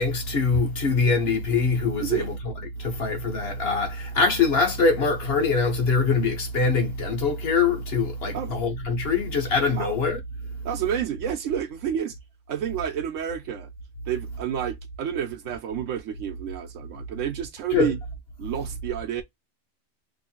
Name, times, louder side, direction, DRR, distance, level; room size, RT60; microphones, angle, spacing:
voice 1, 0.0-2.3 2.8-10.2 17.7-17.9, left 4 dB, 55° left, 1.2 m, -23 dB
voice 2, 10.6-12.2 12.5-13.7 14.1-18.0 18.4-19.2, right 9 dB, 75° right, 1.0 m, -29 dB
3.1 x 2.6 x 4.2 m
omnidirectional pair, 1.3 m